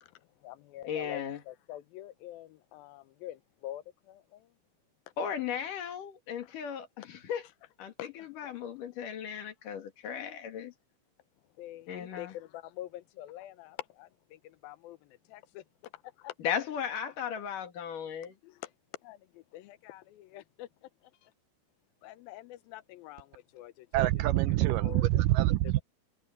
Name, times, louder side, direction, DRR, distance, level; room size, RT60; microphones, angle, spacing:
voice 1, 0.0-4.5 6.4-6.6 8.0-8.5 11.6-15.6 15.9-16.3 18.4-18.7 19.0-21.3 22.0-24.1 24.8-25.2, left 14 dB, 85° left, 2.6 m, -46 dB
voice 2, 0.8-1.4 5.2-7.5 7.8-10.7 11.9-12.3 16.4-18.4, left 8 dB, 65° left, 3.5 m, -36 dB
voice 3, 23.9-25.8, right 16 dB, 80° right, 2.0 m, -25 dB
omnidirectional pair, 4.2 m